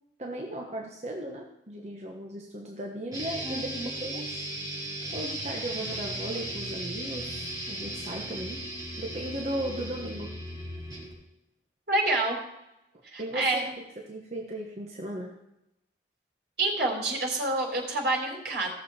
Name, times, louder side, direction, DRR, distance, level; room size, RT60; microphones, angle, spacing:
voice 1, 0.2-4.3 5.1-8.6 9.0-10.3 13.2-13.5 14.1-15.3, right 1 dB, 35° right, 0 dB, 1.2 m, -36 dB
sound 1, 3.1-11.1, right 1 dB, 20° right, 5.0 m, -36 dB
voice 2, 3.4-3.9 11.9-12.4 13.1-13.6 16.6-18.7, right 2 dB, 70° right, -1 dB, 3.7 m, -28 dB
17.5 x 6.8 x 4.4 m, 0.87 s
head